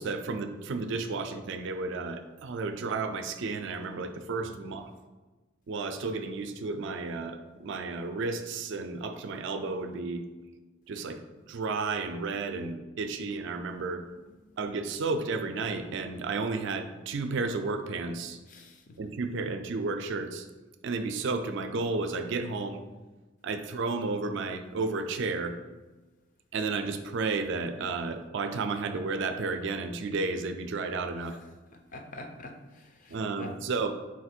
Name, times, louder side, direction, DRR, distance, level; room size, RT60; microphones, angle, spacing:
voice 1, 0.0-4.9 5.7-10.2 10.9-14.0 14.6-18.4 19.0-20.5 20.8-22.8 23.4-25.5 26.5-31.4 33.1-33.9, right 3 dB, 60° right, 7 dB, 0.4 m, -32 dB
voice 2, 18.5-18.8 31.9-33.6, left 2 dB, 40° left, 4 dB, 0.5 m, -45 dB
4.1 x 2.5 x 4.3 m, 1.2 s
head